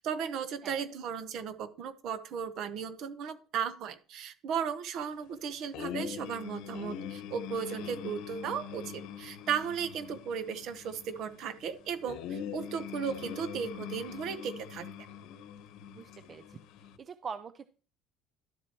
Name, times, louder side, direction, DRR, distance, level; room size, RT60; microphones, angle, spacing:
voice 1, 0.0-14.9, right 7 dB, 55° right, 12 dB, 0.9 m, -36 dB
sound 1, 5.7-17.0, left 8 dB, 70° left, 0.9 m, -43 dB
voice 2, 16.0-16.6 17.0-17.7, right 6 dB, 30° right, 12 dB, 0.5 m, -43 dB
12.0 x 7.5 x 3.0 m, 0.38 s
cardioid pair, 145°, 0 cm